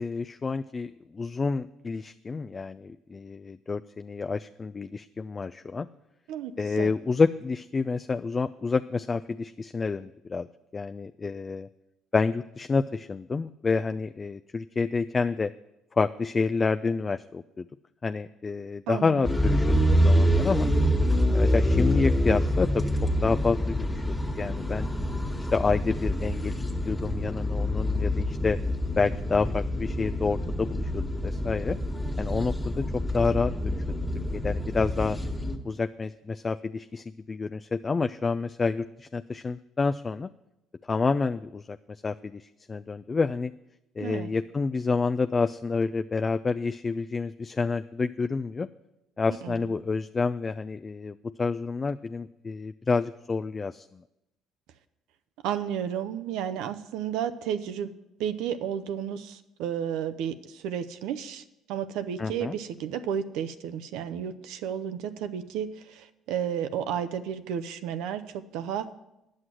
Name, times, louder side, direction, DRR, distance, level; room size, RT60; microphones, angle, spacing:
voice 1, 0.0-5.9 6.6-10.5 10.7-11.7 12.1-15.5 15.9-17.7 18.0-20.7 21.3-22.9 23.2-24.9 25.5-26.5 26.9-28.6 29.0-31.8 32.2-33.8 34.3-35.2 35.6-40.3 40.9-43.5 44.0-48.7 49.2-54.0 62.2-62.5, left 4 dB, 30° left, 9 dB, 0.3 m, -28 dB
voice 2, 6.3-6.9 18.9-19.2 44.0-44.3 49.4-49.6 55.4-57.9 58.2-61.4 61.7-68.2 68.5-68.9, right 9 dB, 80° right, 10 dB, 0.6 m, -32 dB
sound 1, 19.2-35.6, equal, 10° left, 1.7 m, -26 dB
9.6 x 6.4 x 7.6 m, 0.91 s
supercardioid pair, 75°, 0 cm